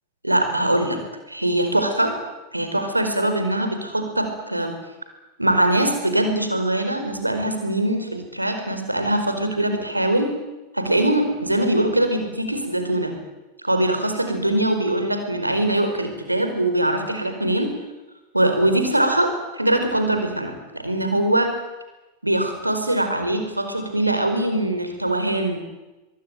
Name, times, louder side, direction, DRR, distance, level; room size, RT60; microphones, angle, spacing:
voice 1, 0.2-1.0 1.3-2.1 2.5-4.7 5.4-10.3 10.7-13.1 13.6-17.7 18.3-21.5 22.2-25.6, right 1 dB, 85° right, 6 dB, 4.9 m, -22 dB
24.0 x 23.0 x 9.2 m, 1.1 s
figure-of-eight pair, 90°, 0 cm